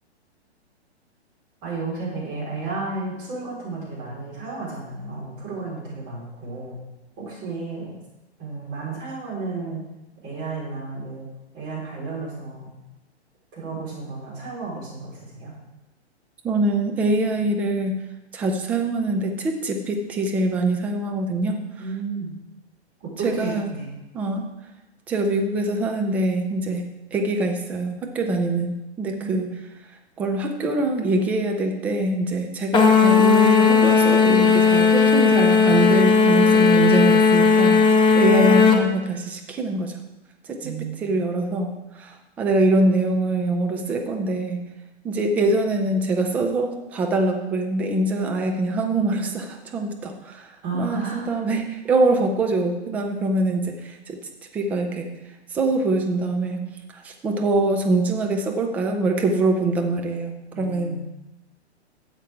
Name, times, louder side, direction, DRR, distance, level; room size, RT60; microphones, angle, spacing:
voice 1, 1.6-6.8 7.2-8.0 8.4-9.8 10.2-11.3 11.5-12.7 13.5-15.5 21.8-22.3 23.0-23.9 29.1-29.6 40.6-41.0 50.6-51.3 60.5-61.0, right 3 dB, 30° right, -5 dB, 4.2 m, -32 dB
voice 2, 16.4-18.0 18.3-21.6 23.2-23.7 24.1-24.5 25.1-26.8 27.1-29.5 30.2-40.0 40.5-44.6 45.0-54.2 54.5-55.1 55.5-56.7 56.9-61.0, right 2 dB, 5° right, 3 dB, 0.3 m, -24 dB
sound 1, 32.7-38.8, left 5 dB, 15° left, 0.8 m, -16 dB
12.5 x 8.1 x 3.5 m, 0.99 s
figure-of-eight pair, 115°, 34 cm